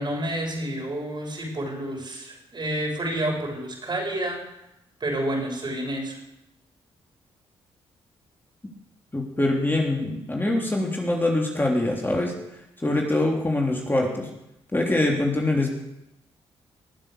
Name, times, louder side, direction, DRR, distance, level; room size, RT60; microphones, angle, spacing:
voice 1, 0.0-4.4 5.0-6.2, right 1 dB, 45° right, 0 dB, 6.7 m, -29 dB
voice 2, 9.1-12.3 12.8-14.3 14.7-15.7, left 2 dB, 20° left, -1 dB, 3.5 m, -24 dB
21.0 x 7.6 x 6.7 m, 0.86 s
supercardioid pair, 55°, 11 cm